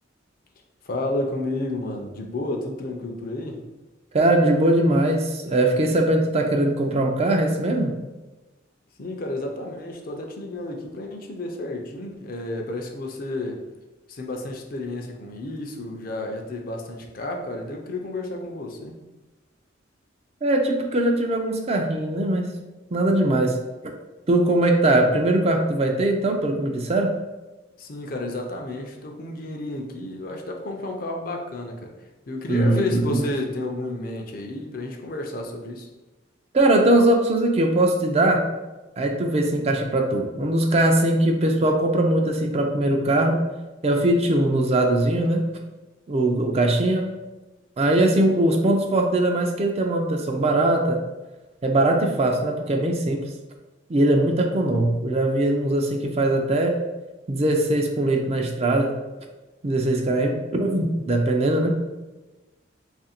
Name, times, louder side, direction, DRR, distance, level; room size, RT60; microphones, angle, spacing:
voice 1, 0.8-3.6 9.0-13.6 14.1-18.9 27.8-31.9 32.3-35.9, left 2 dB, 50° left, 2 dB, 0.5 m, -31 dB
voice 2, 4.1-8.0 20.4-22.6 22.9-23.6 24.3-27.1 32.5-33.2 36.5-38.4 39.0-43.4 43.8-45.5 46.1-47.1 47.8-51.0 51.6-53.2 53.9-56.8 57.3-59.0 59.6-61.8, right 1 dB, 35° right, 3 dB, 0.4 m, -21 dB
3.1 x 2.5 x 4.2 m, 1.1 s
head